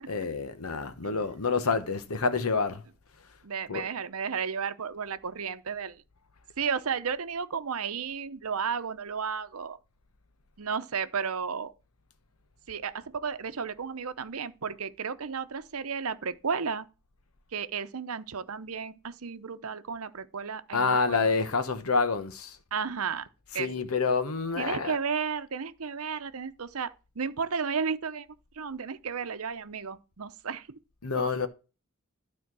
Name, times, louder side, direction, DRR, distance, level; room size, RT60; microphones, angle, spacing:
voice 1, 0.1-2.8 3.7-3.8 20.7-22.6 23.5-25.0 31.0-31.5, left 4 dB, 85° left, 1.0 m, -28 dB
voice 2, 3.4-6.0 6.6-9.8 10.6-11.7 12.7-16.9 17.5-21.3 22.7-23.3 23.5-23.7 24.6-28.3 28.6-30.7 31.2-31.3, right 6 dB, 85° right, 0.8 m, -33 dB
12.0 x 4.4 x 6.0 m
head